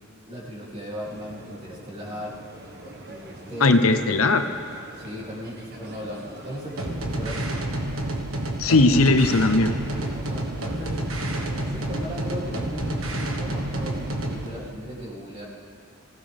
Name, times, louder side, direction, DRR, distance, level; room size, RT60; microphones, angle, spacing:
voice 1, 0.3-2.4 3.0-3.8 4.9-7.5 9.8-11.2 11.7-15.4, equal, 30° right, -5 dB, 3.3 m, -37 dB
sound 1, 1.0-14.7, right 1 dB, 50° right, 1.6 m, -44 dB
voice 2, 3.6-4.5 8.6-9.8, left 2 dB, 90° left, 8 dB, 0.9 m, -18 dB
sound 2, 6.8-14.5, right 1 dB, 70° right, 1.6 m, -29 dB
24.0 x 16.0 x 3.6 m, 2.3 s
head